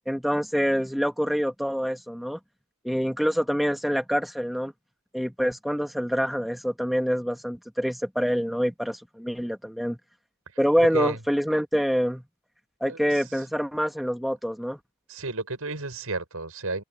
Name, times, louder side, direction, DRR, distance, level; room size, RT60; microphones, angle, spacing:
voice 1, 0.1-2.4 2.8-4.7 5.1-10.0 10.6-12.2 12.8-14.8, equal, ahead, 1.2 m, -26 dB
voice 2, 10.5-11.2 12.8-13.4 15.1-16.8, right 3 dB, 85° right, 6.0 m, -33 dB
open air
head